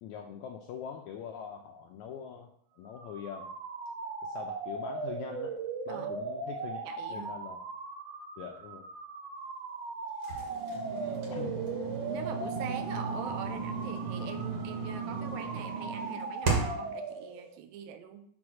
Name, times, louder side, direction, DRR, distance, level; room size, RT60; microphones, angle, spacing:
voice 1, 0.0-2.5 2.8-3.5 4.2-5.5 5.9-6.8 7.1-7.6 8.4-8.8 11.1-11.6, left 8 dB, 80° left, 2 dB, 1.7 m, -43 dB
sound 1, 2.9-17.6, right 4 dB, 70° right, 1.8 m, -39 dB
voice 2, 6.8-7.3 10.9-11.3 12.1-18.2, right 8 dB, 85° right, 8 dB, 2.5 m, -43 dB
sound 2, 10.2-16.9, right 4 dB, 50° right, 2.3 m, -35 dB
7.6 x 3.5 x 6.2 m, 0.66 s
omnidirectional pair, 4.0 m